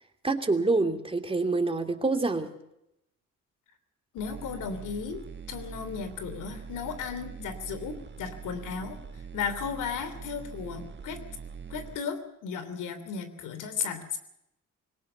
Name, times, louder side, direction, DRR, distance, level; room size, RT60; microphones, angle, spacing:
voice 1, 0.2-2.5, right 3 dB, 20° right, 6 dB, 2.9 m, -26 dB
voice 2, 4.1-5.2 5.5-9.0 9.3-11.2 11.7-14.2, left 6 dB, 85° left, 11 dB, 3.3 m, -35 dB
sound 1, 4.2-12.0, right 6 dB, 35° right, 1.5 m, -43 dB
21.0 x 19.0 x 6.9 m, 0.83 s
cardioid pair, 90°, 30 cm